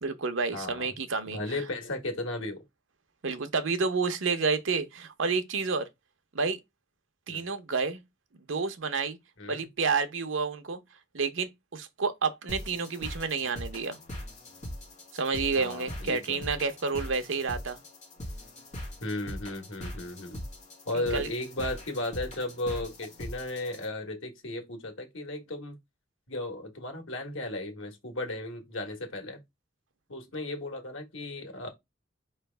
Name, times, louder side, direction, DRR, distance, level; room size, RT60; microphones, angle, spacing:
voice 1, 0.0-1.4 3.2-5.9 6.3-6.6 7.3-8.0 8.5-9.2 9.5-10.8 11.1-14.0 15.1-17.8 21.1-21.3, right 4 dB, 85° right, 0.8 m, -29 dB
voice 2, 0.5-0.9 1.3-2.6 7.3-7.5 9.4-9.6 15.6-16.4 19.0-20.4 20.9-25.8 26.3-29.4 30.1-31.7, left 2 dB, 90° left, 1.5 m, -35 dB
sound 1, 12.5-23.9, equal, 40° left, 1.8 m, -41 dB
4.8 x 3.3 x 3.3 m
head